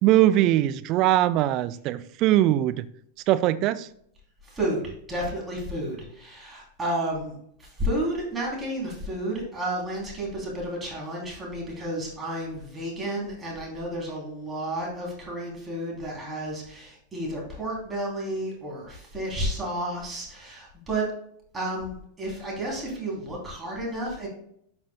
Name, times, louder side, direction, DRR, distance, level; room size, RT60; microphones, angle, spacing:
voice 1, 0.0-2.8 3.3-3.9, right 14 dB, 40° right, 13 dB, 0.4 m, -21 dB
voice 2, 4.4-21.1 21.5-24.3, right 1 dB, 15° right, -3 dB, 3.3 m, -31 dB
12.0 x 5.7 x 2.3 m, 0.68 s
figure-of-eight pair, 90°, 0 cm